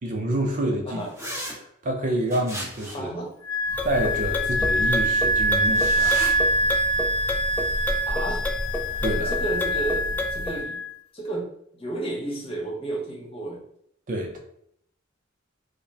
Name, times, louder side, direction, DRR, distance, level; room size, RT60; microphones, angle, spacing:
voice 1, 0.0-1.0 1.6-3.1 3.8-6.2 9.0-9.3 14.1-14.4, right 1 dB, 40° right, 1 dB, 0.5 m, -27 dB
sound 1, 1.2-1.5 2.3-3.1 5.7-6.3, equal, 10° right, 1.5 m, -34 dB
voice 2, 2.9-3.3 8.1-8.4 9.2-10.8 11.1-13.6, right 2 dB, 30° left, -2 dB, 1.1 m, -32 dB
Wind instrument woodwind instrument, 3.5-10.9, equal, 85° left, 0.4 m, -25 dB
sound 2, 3.7-10.6, equal, 10° left, 0.3 m, -30 dB
4.9 x 2.1 x 2.8 m, 0.70 s
head